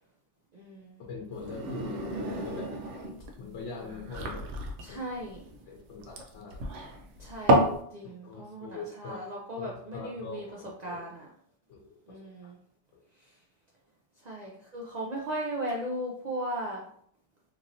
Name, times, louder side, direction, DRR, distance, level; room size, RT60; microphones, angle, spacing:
voice 1, 0.5-1.0 4.8-5.5 7.2-10.5 10.8-11.3 12.1-12.6 14.2-16.8, right 1 dB, 55° right, -3 dB, 0.5 m, -37 dB
voice 2, 1.1-2.7 3.4-4.5 4.9-5.0 5.7-6.6 8.2-9.2 9.6-11.0 11.7-12.5 12.9-13.0, left 4 dB, 85° left, -1 dB, 0.9 m, -42 dB
sound 1, 1.3-7.8, right 1 dB, 85° right, 0.9 m, -30 dB
3.0 x 2.6 x 2.6 m, 0.64 s
omnidirectional pair, 1.2 m